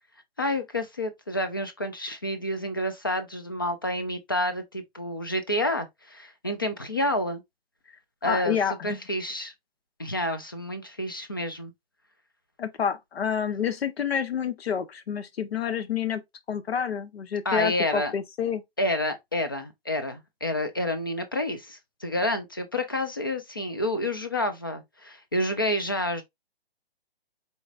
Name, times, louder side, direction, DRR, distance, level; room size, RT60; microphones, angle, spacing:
voice 1, 0.4-7.4 8.2-9.5 10.0-11.7 17.4-18.1 18.8-26.2, left 1 dB, 25° left, 0.4 m, -29 dB
voice 2, 8.2-9.0 12.6-16.2 16.5-18.6, left 7 dB, 75° left, 1.0 m, -28 dB
4.6 x 4.0 x 2.4 m
hypercardioid pair, 170°, 31 cm